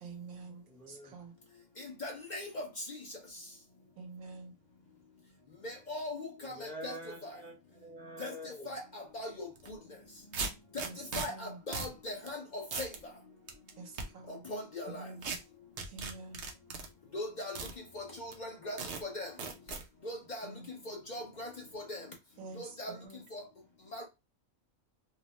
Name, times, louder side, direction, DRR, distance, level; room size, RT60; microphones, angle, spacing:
voice 1, 0.0-1.3 4.0-4.5 10.8-10.9 11.3-11.6 13.8-14.4 14.9-15.3 15.9-16.4 20.4-20.7 22.4-23.2, right 3 dB, 75° right, 1.1 m, -47 dB
voice 2, 0.7-1.1 6.4-8.7, equal, 5° left, 0.6 m, -46 dB
voice 3, 2.0-2.6 5.6-6.5 6.8-6.9 8.2-8.3 8.7-8.8 9.1-9.3 11.2-12.4 12.8-12.9 14.5-14.9 17.1-17.6 17.9-18.0 18.4-18.8 19.1-19.3 20.0-20.5 20.9-21.5 21.7-22.0 22.6-22.9 23.3-23.4 23.9-24.0, left 1 dB, 45° left, 0.6 m, -39 dB
sound 1, 9.6-9.7 10.3-11.3 11.7-12.0 12.3-12.4 12.7-13.0 13.5-14.1 15.2-15.4 15.8-16.9 17.6-17.7 18.3-18.4 18.8-19.0 19.4-19.8, right 4 dB, 60° right, 0.7 m, -37 dB
2.8 x 2.0 x 3.0 m
omnidirectional pair, 1.4 m